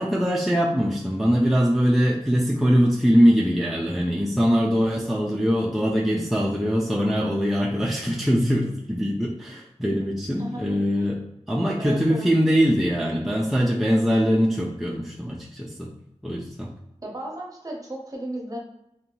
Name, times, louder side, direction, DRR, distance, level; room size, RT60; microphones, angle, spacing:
voice 1, 0.0-11.2 11.5-15.9 16.2-16.7, equal, ahead, -3 dB, 0.4 m, -22 dB
voice 2, 10.4-11.1 11.8-12.3 17.0-18.6, right 1 dB, 30° right, -1 dB, 0.7 m, -35 dB
2.6 x 2.2 x 2.9 m, 0.85 s
wide cardioid pair, 75°, 11 cm